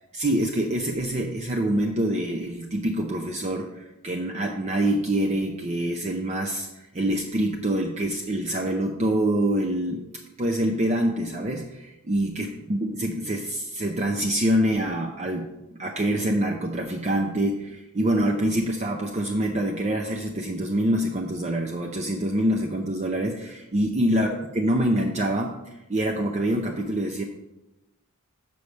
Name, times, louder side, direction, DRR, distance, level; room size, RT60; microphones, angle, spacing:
voice 1, 0.1-10.0 10.4-15.5 15.8-27.2, right 1 dB, 30° right, 2 dB, 0.6 m, -25 dB
7.0 x 4.7 x 6.4 m, 0.96 s
head